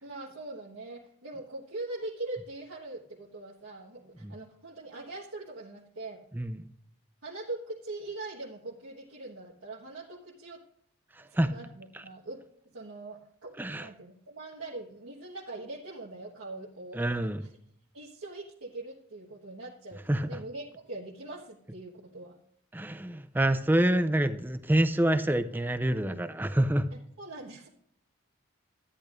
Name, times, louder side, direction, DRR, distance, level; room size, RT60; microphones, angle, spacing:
voice 1, 0.0-6.2 7.2-10.6 11.4-17.1 17.4-17.5 17.9-22.4 26.9-27.7, right 2 dB, 85° right, -6 dB, 1.4 m, -42 dB
voice 2, 16.9-17.4 20.1-20.3 22.7-26.9, right 1 dB, 10° right, 11 dB, 0.4 m, -26 dB
13.5 x 10.0 x 2.5 m, 0.72 s
head